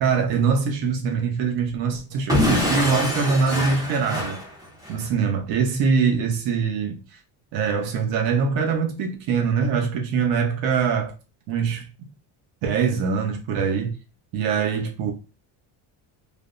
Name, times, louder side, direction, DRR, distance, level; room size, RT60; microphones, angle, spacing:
voice 1, 0.0-4.4 4.9-7.2 7.5-11.1 11.5-11.9 12.6-13.9 14.3-15.1, right 5 dB, 60° right, 0.7 m, -23 dB
Explosion / Shatter, 2.3-5.1, left 1 dB, 10° right, 0.4 m, -24 dB
3.3 x 2.0 x 2.4 m
cardioid pair, 165°, 50 cm